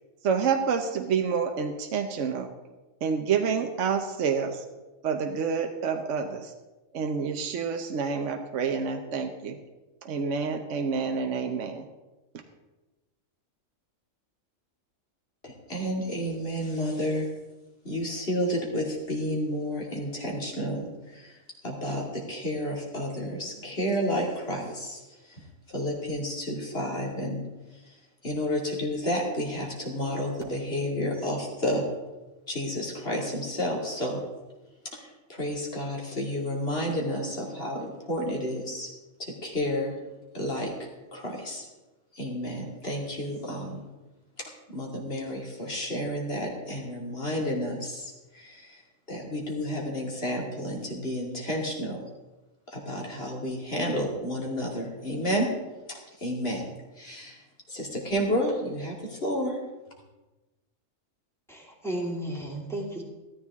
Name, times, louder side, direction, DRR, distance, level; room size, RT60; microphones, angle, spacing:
voice 1, 0.2-2.5 3.0-4.6 5.0-6.5 6.9-9.6 10.0-11.9 12.3-12.4, right 6 dB, 70° right, 5 dB, 1.2 m, -28 dB
voice 2, 15.4-17.3 17.8-31.9 32.5-34.2 34.8-38.9 39.2-41.7 42.1-43.9 44.4-48.8 49.1-52.0 52.7-55.5 55.9-59.6, equal, 50° left, -1 dB, 2.8 m, -31 dB
voice 3, 61.5-63.0, right 1 dB, ahead, -3 dB, 2.7 m, -33 dB
14.0 x 13.5 x 3.6 m, 1.1 s
omnidirectional pair, 1.3 m